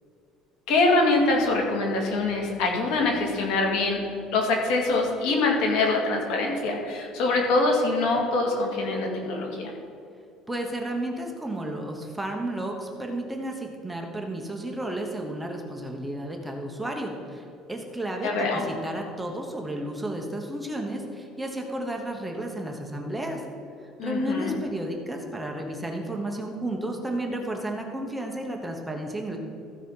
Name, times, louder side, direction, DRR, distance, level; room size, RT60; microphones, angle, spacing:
voice 1, 0.7-4.0 4.3-9.7 18.2-18.6 24.0-24.5, left 3 dB, 75° left, 1 dB, 2.2 m, -24 dB
voice 2, 10.5-23.4 24.0-29.4, right 1 dB, 5° right, 1 dB, 1.0 m, -32 dB
15.0 x 5.0 x 5.6 m, 2.5 s
cardioid pair, 155°, 0 cm